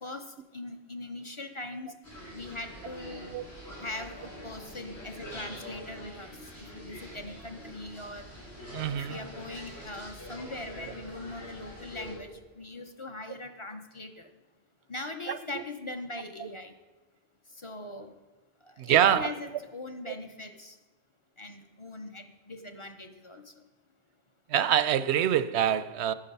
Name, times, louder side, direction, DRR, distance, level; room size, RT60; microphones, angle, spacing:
voice 1, 0.0-1.9 2.3-3.3 3.8-8.3 8.9-14.3 14.9-16.7 17.5-18.1 18.7-20.8 21.4-23.5, left 2 dB, 35° left, 0.7 m, -41 dB
sound 1, 2.0-12.2, equal, 75° left, 4.6 m, -45 dB
voice 2, 8.7-9.2 15.3-15.6 16.4-16.5 18.8-19.3 20.1-20.2 24.5-26.1, right 10 dB, 85° right, 0.8 m, -25 dB
11.0 x 9.9 x 5.4 m
omnidirectional pair, 1.1 m